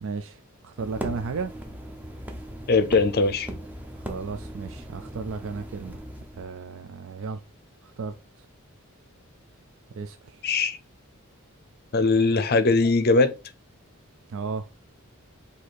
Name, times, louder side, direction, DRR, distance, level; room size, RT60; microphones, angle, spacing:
voice 1, 0.0-1.5 4.0-6.0 6.3-7.4 7.8-8.5 9.9-10.4 14.3-14.7, right 4 dB, 65° right, 0.4 m, -34 dB
sound 1, 0.8-6.4, right 1 dB, 5° right, 0.6 m, -38 dB
voice 2, 2.7-3.5 10.4-10.8 11.9-13.3, left 3 dB, 45° left, 0.6 m, -20 dB
4.2 x 2.8 x 4.6 m
head